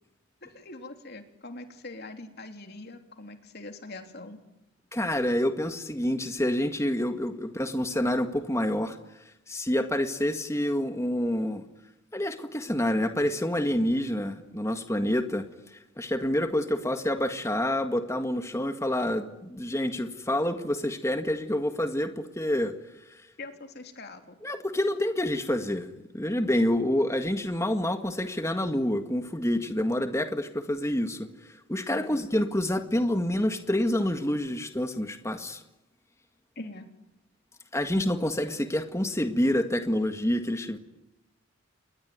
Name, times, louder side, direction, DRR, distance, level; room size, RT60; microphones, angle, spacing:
voice 1, 0.4-4.4 23.4-24.4 31.9-32.3 36.6-36.9, left 2 dB, 50° left, 5 dB, 3.4 m, -43 dB
voice 2, 4.9-9.0 9.5-11.6 12.1-22.7 24.4-31.3 31.7-35.6 37.7-40.8, left 1 dB, 15° left, 7 dB, 1.8 m, -27 dB
28.5 x 21.5 x 9.5 m, 0.92 s
head